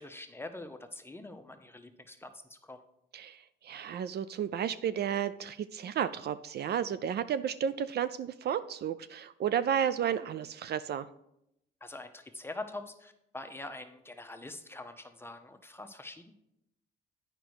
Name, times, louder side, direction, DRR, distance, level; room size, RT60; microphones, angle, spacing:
voice 1, 0.0-2.8 11.8-16.3, left 2 dB, 10° left, 6 dB, 0.8 m, -44 dB
voice 2, 3.1-11.1, right 9 dB, 55° right, 13 dB, 0.4 m, -32 dB
8.8 x 5.2 x 4.7 m, 0.81 s
cardioid pair, 90°, 20 cm